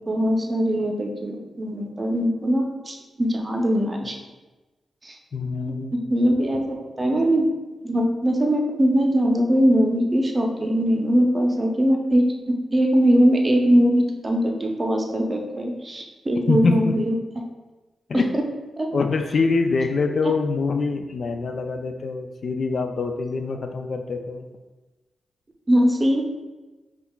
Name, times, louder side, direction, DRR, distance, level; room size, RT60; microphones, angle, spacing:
voice 1, 0.1-4.1 5.0-5.2 6.1-7.4 7.8-17.1 18.3-18.4 18.8-18.9 25.7-26.2, equal, 30° right, 1 dB, 0.6 m, -21 dB
voice 2, 5.3-6.0 16.5-16.9 18.1-18.3 18.9-24.5, left 4 dB, 60° left, 5 dB, 0.3 m, -24 dB
5.4 x 2.4 x 2.3 m, 1.2 s
cardioid pair, 60°, 0 cm